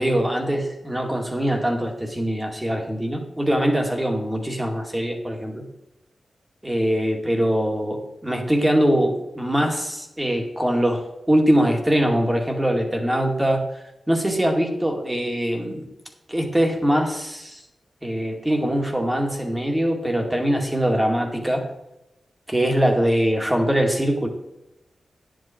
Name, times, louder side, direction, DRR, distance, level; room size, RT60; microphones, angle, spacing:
voice 1, 0.0-5.6 6.6-15.9 16.3-17.6 18.0-21.6 22.5-24.3, equal, 15° right, 2 dB, 2.2 m, -22 dB
10.0 x 7.9 x 4.5 m, 0.90 s
cardioid pair, 65°, 0 cm